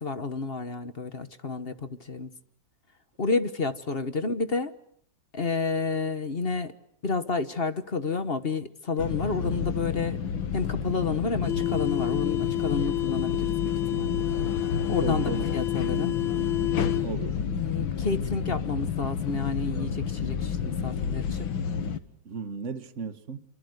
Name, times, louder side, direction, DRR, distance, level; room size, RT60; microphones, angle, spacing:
voice 1, 0.0-2.3 3.2-4.7 5.3-6.7 7.0-10.2 10.5-14.2 14.9-16.2 17.4-21.5, left 4 dB, 35° left, 1.3 m, -30 dB
sound 1, 9.0-22.0, left 8 dB, 80° left, 2.2 m, -28 dB
voice 2, 15.0-15.4 15.8-16.1 17.0-17.4 22.3-23.4, right 6 dB, 40° right, 1.8 m, -35 dB
28.0 x 25.5 x 8.0 m
omnidirectional pair, 2.1 m